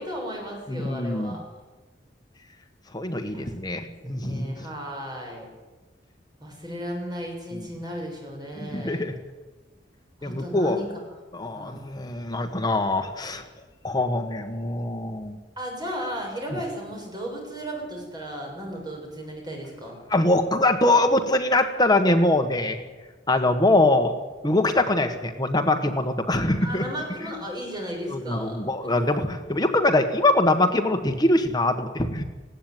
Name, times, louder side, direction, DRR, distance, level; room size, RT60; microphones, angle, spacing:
voice 1, 0.0-1.4 3.2-5.5 6.4-9.0 10.2-10.9 11.5-11.9 15.6-20.0 26.6-29.1, equal, 25° right, 0 dB, 6.8 m, -35 dB
voice 2, 0.7-1.4 2.9-4.5 7.5-7.7 8.6-9.1 10.2-10.8 11.3-13.4 13.8-15.4 16.5-16.6 20.1-22.8 23.3-24.1 24.4-26.8 28.1-32.2, left 2 dB, 20° left, 6 dB, 1.5 m, -23 dB
19.5 x 16.5 x 9.3 m, 1.3 s
head